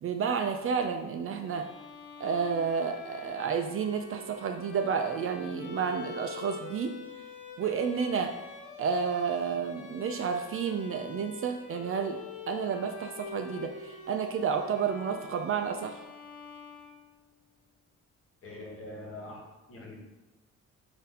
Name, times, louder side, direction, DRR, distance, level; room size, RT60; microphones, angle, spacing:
voice 1, 0.0-1.7 2.2-7.0 7.6-8.3 8.8-12.2 12.5-16.0, right 6 dB, 45° right, 6 dB, 0.4 m, -31 dB
Bowed string instrument, 1.4-17.4, left 5 dB, 80° left, 0.7 m, -46 dB
voice 2, 18.4-19.4 19.7-20.0, left 1 dB, 50° left, -1 dB, 1.2 m, -43 dB
3.8 x 2.7 x 4.0 m, 1.1 s
cardioid pair, 90°, 30 cm